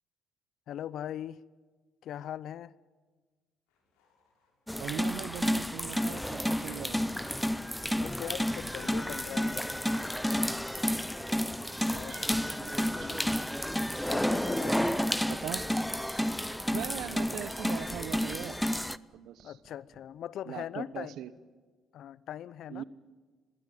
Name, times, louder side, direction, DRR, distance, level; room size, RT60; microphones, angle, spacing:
voice 1, 0.7-1.4 2.0-2.7 7.9-9.6 11.9-12.2 12.9-13.3 14.0-15.0 19.4-21.1 21.9-22.8, left 11 dB, 65° left, 0.6 m, -40 dB
sound 1, 3.7-15.3, left 4 dB, 85° left, 7.0 m, -64 dB
sound 2, 4.7-19.0, equal, ahead, 0.6 m, -31 dB
voice 2, 4.8-7.0 11.9-13.4 15.3-15.6 16.7-18.6 19.1-19.6 20.5-21.3 22.7-22.8, right 11 dB, 70° right, 1.0 m, -40 dB
Hammer, 13.9-20.0 21.4-21.5, right 4 dB, 50° right, 6.2 m, -62 dB
21.5 x 16.0 x 9.3 m
supercardioid pair, 70°, 0 cm